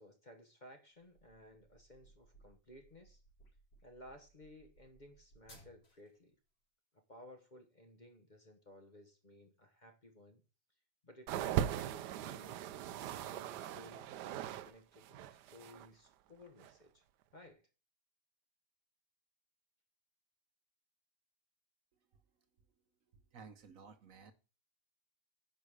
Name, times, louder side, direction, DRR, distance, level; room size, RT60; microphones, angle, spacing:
voice 1, 0.0-3.2 3.8-6.4 6.9-10.4 11.0-12.6 13.3-17.0 17.3-17.7, left 1 dB, 35° left, 1.0 m, -58 dB
sound 1, 1.0-6.2, right 1 dB, 90° left, 4.8 m, -63 dB
sound 2, 11.3-14.7 15.0-15.9 16.6-16.7, right 10 dB, 85° right, 1.2 m, -39 dB
voice 2, 23.3-24.3, right 5 dB, 60° right, 1.1 m, -54 dB
9.8 x 5.7 x 4.8 m
omnidirectional pair, 1.7 m